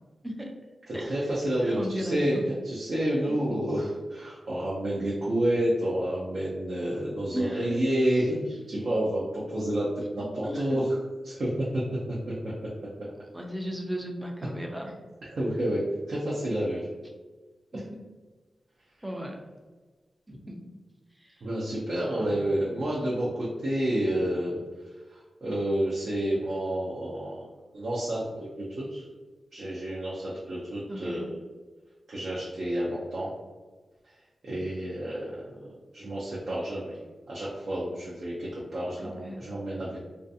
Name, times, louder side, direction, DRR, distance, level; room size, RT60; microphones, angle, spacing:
voice 1, 1.1-9.9 10.1-11.0 11.2-11.8 15.3-15.8 16.1-16.9 21.4-24.6 25.1-27.5 27.7-29.0 29.5-31.4 32.1-33.3 34.4-35.4 35.9-40.0, right 1 dB, 65° right, -7 dB, 0.5 m, -29 dB
voice 2, 1.6-2.4 3.3-3.6 7.3-7.8 10.2-10.8 13.3-14.9 17.7-17.8 19.0-19.4 20.3-20.6 21.2-21.4 22.3-22.4 30.9-31.2 39.0-39.5, equal, 10° right, 1 dB, 0.4 m, -36 dB
2.5 x 2.4 x 2.6 m, 1.3 s
wide cardioid pair, 140°, 0 cm